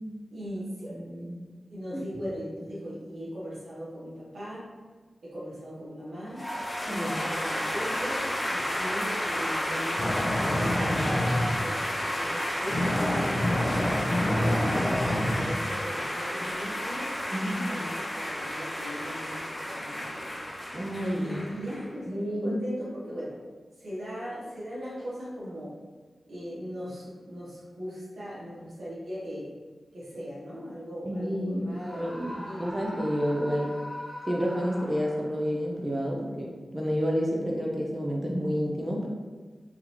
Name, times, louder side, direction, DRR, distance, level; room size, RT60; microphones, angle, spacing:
voice 1, 0.3-1.0 1.7-4.6 5.2-6.4 6.9-17.3 17.6-19.4 19.7-20.4 21.2-23.4 23.8-25.7 26.3-29.5 29.9-32.6, equal, 85° right, -8 dB, 1.4 m, -39 dB
voice 2, 0.9-1.4 1.9-2.0 6.9-7.3 17.3-17.7 20.7-21.4 22.1-22.6 31.1-33.7 34.3-39.1, equal, 20° right, -2 dB, 0.5 m, -30 dB
sound 1, 6.3-21.9, equal, 20° left, 1.0 m, -32 dB
sound 2, 10.0-11.6 12.1-12.4 12.7-15.7, left 1 dB, 40° left, 0.5 m, -27 dB
Screaming, 31.8-35.4, left 1 dB, 35° right, 1.0 m, -41 dB
3.9 x 2.7 x 2.9 m, 1.4 s
wide cardioid pair, 80°, 0 cm